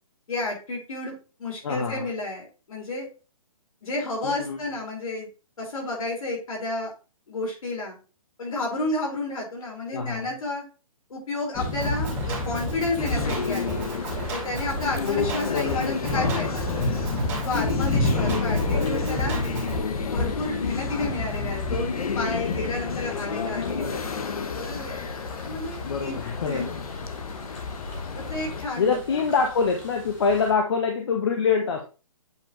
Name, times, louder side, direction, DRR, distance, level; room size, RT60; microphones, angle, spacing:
voice 1, 0.3-3.1 3.8-5.3 5.6-6.9 7.3-8.0 8.4-10.6 11.1-13.8 14.3-16.7 17.3-19.4 20.0-23.8 24.5-25.0 25.4-26.2 26.5-26.7 28.1-29.2, left 2 dB, 70° left, -1 dB, 4.1 m, -31 dB
voice 2, 1.6-2.1 4.2-4.6 9.9-10.3 15.5-16.1 18.7-18.9 23.6-24.1 25.8-26.8 28.8-31.8, left 5 dB, 45° left, 3 dB, 0.9 m, -25 dB
sound 1, 11.5-30.5, left 2 dB, 15° left, 1.5 m, -32 dB
Drum kit, 11.8-19.8, right 2 dB, 15° right, 2.1 m, -33 dB
sound 2, 13.0-28.7, left 5 dB, 85° left, 1.1 m, -31 dB
8.2 x 4.5 x 3.0 m, 0.33 s
hypercardioid pair, 170°, 18 cm